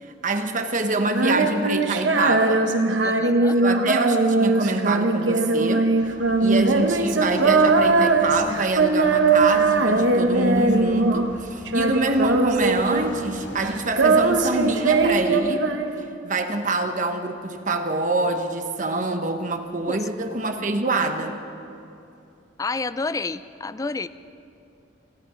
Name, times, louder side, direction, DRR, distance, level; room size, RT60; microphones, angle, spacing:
voice 1, 0.0-2.6 3.6-5.9 6.3-15.7 16.2-21.3, right 2 dB, 45° right, 6 dB, 1.1 m, -25 dB
Female singing, 1.1-11.4 11.7-13.3 13.6-16.3, right 3 dB, 85° right, 1.0 m, -20 dB
voice 2, 3.0-3.6 6.4-6.5 19.9-20.0 22.6-24.1, left 3 dB, 20° left, 14 dB, 0.3 m, -29 dB
sound 1, 5.9-15.2, left 1 dB, 75° left, 2.6 m, -44 dB
26.5 x 11.0 x 5.0 m, 2.7 s
head